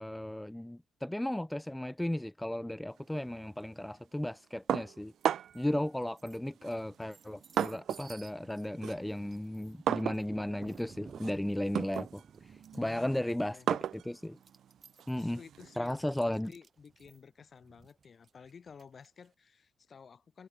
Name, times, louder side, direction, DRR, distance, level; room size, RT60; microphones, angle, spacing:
voice 1, 0.0-5.1 5.5-12.2 12.8-14.4 15.1-15.4 15.7-16.5, left 1 dB, 5° left, 0.5 m, -35 dB
sound 1, 4.7-5.7 6.6-8.2 8.5-15.8, right 10 dB, 65° right, 0.4 m, -36 dB
sound 2, 5.2-5.6 6.0-19.3, right 5 dB, 40° right, 2.2 m, -56 dB
voice 2, 12.7-13.7 15.1-20.5, left 6 dB, 45° left, 2.6 m, -53 dB
cardioid pair, 90°, 0 cm